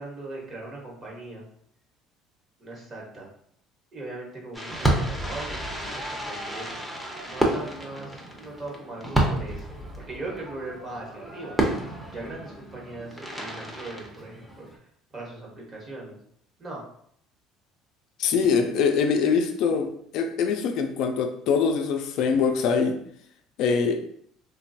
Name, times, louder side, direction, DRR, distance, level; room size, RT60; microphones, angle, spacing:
voice 1, 0.0-1.4 2.6-3.3 3.9-6.8 7.2-9.7 10.1-11.6 12.1-14.9 15.1-16.2 16.6-16.8, right 2 dB, 35° right, -3 dB, 1.1 m, -39 dB
Fireworks, 4.5-14.8, right 1 dB, 5° right, 0.7 m, -30 dB
voice 2, 18.2-23.0 23.6-24.0, left 5 dB, 70° left, 6 dB, 0.4 m, -23 dB
3.0 x 2.2 x 2.6 m, 0.66 s
supercardioid pair, 100°, 0 cm